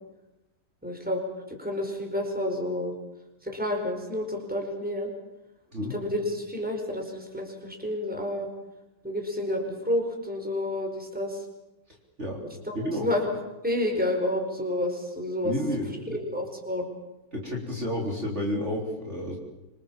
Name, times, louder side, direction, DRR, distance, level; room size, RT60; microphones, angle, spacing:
voice 1, 0.8-2.9 3.4-5.1 5.9-8.5 9.0-11.4 12.4-13.3 13.6-15.5 16.1-16.9, left 1 dB, 5° right, 2 dB, 4.8 m, -30 dB
voice 2, 12.7-13.1 15.4-15.9 17.3-19.4, equal, 40° right, -1 dB, 4.1 m, -30 dB
26.5 x 25.5 x 7.4 m, 0.99 s
omnidirectional pair, 1.8 m